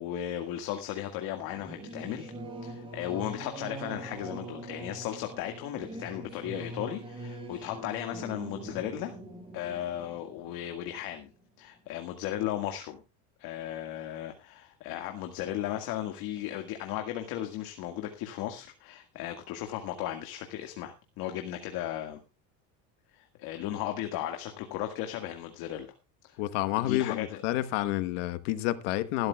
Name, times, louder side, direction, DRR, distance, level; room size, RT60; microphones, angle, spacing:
voice 1, 0.0-2.3 2.6-9.1 9.5-11.3 11.6-13.0 13.4-22.2 23.1-25.9 26.2-26.4 26.8-27.4, left 12 dB, 70° left, 1.9 m, -36 dB
Singing / Musical instrument, 1.3-11.4, right 1 dB, 15° right, 6.5 m, -43 dB
voice 2, 26.4-29.3, left 15 dB, 90° left, 1.3 m, -29 dB
20.0 x 12.5 x 2.3 m
cardioid pair, 125°, 36 cm